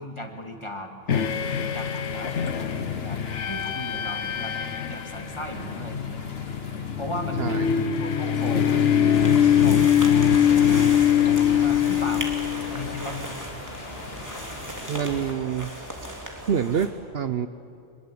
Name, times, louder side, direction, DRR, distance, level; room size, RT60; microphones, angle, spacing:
voice 1, 0.0-1.4 1.7-6.2 7.0-10.8 11.2-12.3 12.7-13.3, left 1 dB, 25° left, 3 dB, 2.4 m, -37 dB
sound 1, 1.1-13.1, left 9 dB, 75° left, 1.2 m, -23 dB
sound 2, 1.1-15.3, left 2 dB, 55° left, 2.4 m, -40 dB
voice 2, 7.4-7.7 14.9-15.7 16.5-16.9 17.1-17.5, right 8 dB, 60° right, 11 dB, 0.9 m, -26 dB
sound 3, 9.1-16.9, equal, 15° right, 2.9 m, -37 dB
24.5 x 21.5 x 8.5 m, 2.6 s
omnidirectional pair, 1.2 m